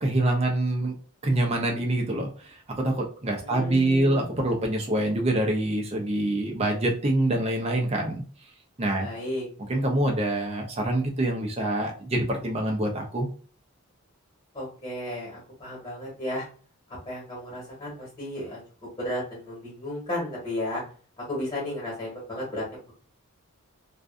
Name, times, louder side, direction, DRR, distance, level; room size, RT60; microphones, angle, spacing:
voice 1, 0.0-0.9 1.2-8.2 8.8-9.1 9.7-13.3, right 1 dB, 30° right, 1 dB, 0.5 m, -25 dB
voice 2, 3.4-4.4 9.0-9.5 14.5-16.5 17.0-18.6 19.0-20.8 21.2-22.9, left 1 dB, 20° left, -6 dB, 1.2 m, -34 dB
2.5 x 2.3 x 2.4 m, 0.41 s
head